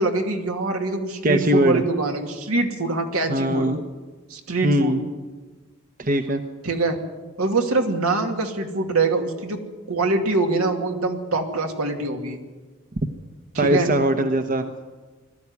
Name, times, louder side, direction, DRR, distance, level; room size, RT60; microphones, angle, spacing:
voice 1, 0.0-3.7 4.3-4.9 6.6-7.0 7.4-9.6 9.9-12.4 13.5-13.9, right 3 dB, 80° right, 3 dB, 2.5 m, -24 dB
voice 2, 1.2-1.8 3.3-3.8 4.6-5.0 6.0-6.4 13.6-14.9, right 1 dB, 40° right, 7 dB, 0.9 m, -21 dB
21.0 x 13.5 x 9.7 m, 1.3 s
head